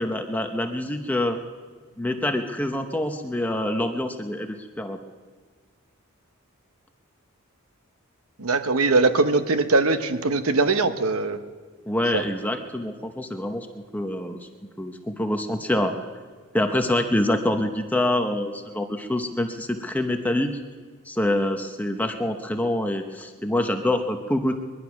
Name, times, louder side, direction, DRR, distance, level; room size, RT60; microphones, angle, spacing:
voice 1, 0.0-1.4 2.0-5.0 11.9-13.7 13.9-14.4 14.8-15.9 16.5-20.5 21.1-24.6, left 1 dB, 5° left, 5 dB, 0.7 m, -26 dB
voice 2, 8.4-11.4 12.1-12.2, right 3 dB, 75° right, 9 dB, 1.0 m, -21 dB
22.0 x 11.0 x 5.9 m, 1.5 s
head